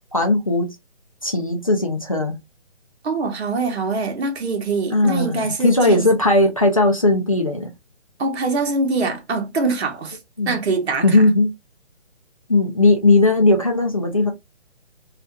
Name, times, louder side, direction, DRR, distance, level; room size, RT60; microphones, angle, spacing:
voice 1, 0.1-0.8 1.2-2.4 4.9-7.7 10.4-10.6 11.0-11.5 12.5-14.3, left 2 dB, 35° left, 0.4 m, -17 dB
voice 2, 3.0-6.0 8.2-10.2 10.5-11.2, right 3 dB, 65° right, 0.9 m, -23 dB
2.5 x 2.4 x 2.2 m
hypercardioid pair, 165°, 34 cm